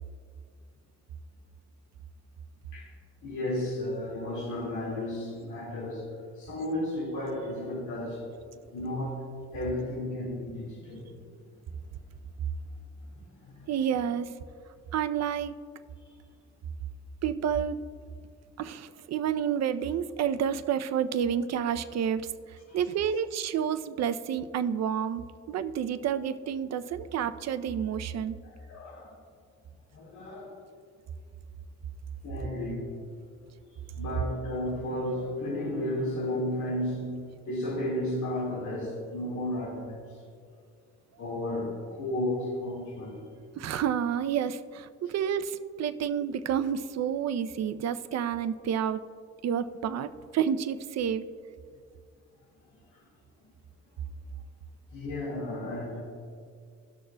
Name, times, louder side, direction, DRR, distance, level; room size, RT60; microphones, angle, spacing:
voice 1, 3.2-8.3 8.7-11.1 13.1-13.7 16.0-16.1 22.7-22.8 28.4-29.2 29.9-30.6 32.2-33.1 33.7-40.2 41.2-43.3 45.1-45.2 52.9-53.0 54.9-56.0, left 1 dB, 75° left, 2.1 m, -34 dB
voice 2, 13.7-14.3 14.9-15.6 17.2-17.8 18.6-28.4 43.6-49.0 49.4-51.3, right 8 dB, 60° right, 0.6 m, -29 dB
19.0 x 6.5 x 2.2 m
cardioid pair, 90°, 30 cm